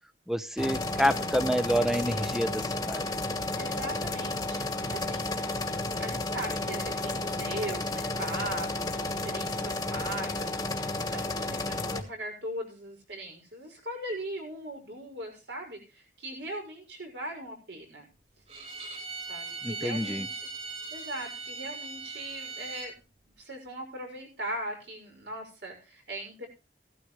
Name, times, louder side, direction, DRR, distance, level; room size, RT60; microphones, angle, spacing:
voice 1, 0.3-3.1 19.6-20.3, equal, ahead, 12 dB, 0.7 m, -28 dB
sound 1, 0.6-12.0, left 2 dB, 20° left, 1.3 m, -32 dB
voice 2, 3.5-5.3 5.8-18.1 19.3-20.5 20.9-22.9 23.4-26.5, right 1 dB, 70° right, 2 dB, 6.1 m, -39 dB
Bowed string instrument, 18.5-22.9, right 4 dB, 35° right, 4.7 m, -39 dB
15.5 x 13.0 x 3.2 m, 0.30 s
head